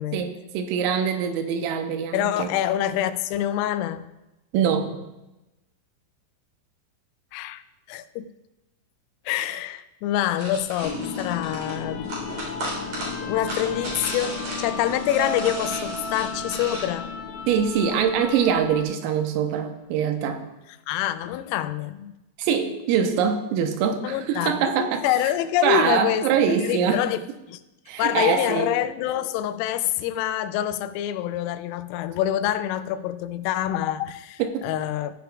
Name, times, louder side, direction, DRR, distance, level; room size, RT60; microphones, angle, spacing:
voice 1, 0.1-2.5 4.5-4.9 17.5-20.4 22.4-25.1 25.6-27.1 27.9-28.8 34.4-34.6, right 7 dB, 85° right, 3.5 m, -23 dB
voice 2, 2.1-4.1 7.3-7.6 7.9-8.3 9.3-12.3 13.0-17.1 20.9-22.1 24.0-27.2 27.5-27.6 28.0-35.1, left 12 dB, 85° left, 3.2 m, -26 dB
sound 1, 10.4-16.9, right 1 dB, 40° right, 4.6 m, -35 dB
sound 2, 10.8-19.0, left 5 dB, 65° left, 3.0 m, -34 dB
Mallet percussion, 15.2-17.6, right 5 dB, 55° right, 2.4 m, -37 dB
15.5 x 10.0 x 2.3 m
omnidirectional pair, 5.9 m